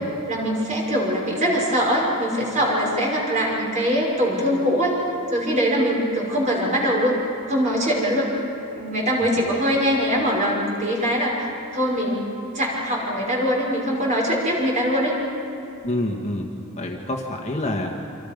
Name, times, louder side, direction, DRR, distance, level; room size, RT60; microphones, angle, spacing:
voice 1, 0.3-5.0 5.3-7.2 7.5-8.3 8.8-12.2 12.5-15.1, equal, 35° right, -2 dB, 5.7 m, -22 dB
voice 2, 9.2-9.5 15.8-16.5 16.8-17.9, left 1 dB, 30° left, 1 dB, 1.7 m, -28 dB
28.5 x 26.0 x 5.3 m, 2.6 s
head